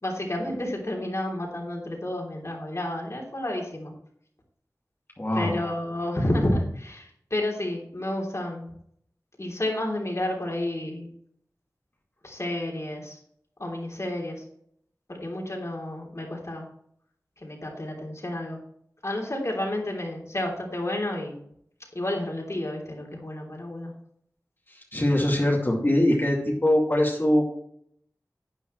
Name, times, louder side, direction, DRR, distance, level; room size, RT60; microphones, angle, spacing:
voice 1, 0.0-3.9 5.3-8.7 9.4-11.1 12.2-13.2 13.6-14.4 15.1-16.7 17.4-18.6 19.0-21.4 21.9-23.9, left 1 dB, 50° left, -1 dB, 3.2 m, -30 dB
voice 2, 5.2-5.6 24.9-27.4, left 1 dB, 35° left, -2 dB, 2.3 m, -22 dB
11.0 x 9.1 x 3.2 m, 0.67 s
wide cardioid pair, 45°, 6 cm